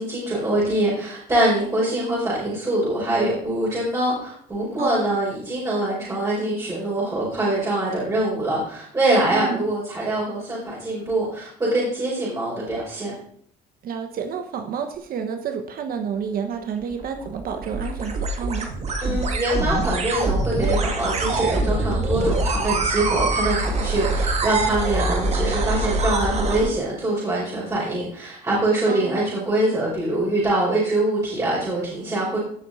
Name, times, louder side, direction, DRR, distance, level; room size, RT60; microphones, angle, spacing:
voice 1, 0.0-13.1 19.0-32.4, right 1 dB, 20° right, -7 dB, 5.1 m, -24 dB
voice 2, 4.8-5.1 9.3-9.7 13.8-18.7 28.9-29.2, right 6 dB, 60° right, 6 dB, 1.2 m, -30 dB
sound 1, 16.8-26.7, right 2 dB, 40° right, 2.1 m, -24 dB
17.0 x 6.4 x 4.1 m, 0.63 s
cardioid pair, 110°, 17 cm